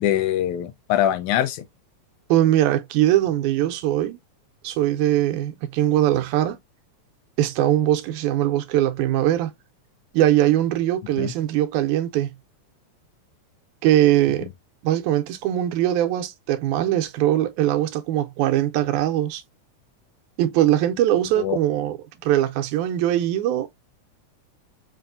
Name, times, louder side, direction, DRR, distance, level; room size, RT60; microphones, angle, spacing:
voice 1, 0.0-1.7 11.2-11.3 21.4-21.6, left 11 dB, 85° left, 2.1 m, -23 dB
voice 2, 2.3-4.2 4.6-6.6 7.4-9.5 10.1-12.3 13.8-14.5 14.8-19.4 20.4-22.0 22.2-23.7, right 13 dB, 90° right, 2.1 m, -21 dB
5.3 x 2.5 x 2.5 m
omnidirectional pair, 3.4 m